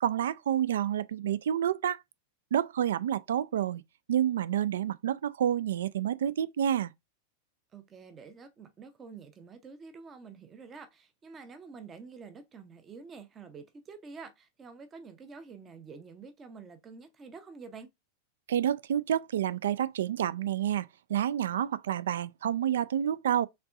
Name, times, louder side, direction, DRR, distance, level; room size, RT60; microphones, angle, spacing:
voice 1, 0.0-2.0 2.5-3.8 4.1-6.9 18.5-23.5, right 10 dB, 60° right, 0.3 m, -29 dB
voice 2, 7.7-17.9, right 5 dB, 25° right, 0.7 m, -48 dB
4.5 x 3.6 x 2.5 m
figure-of-eight pair, 90°, 0 cm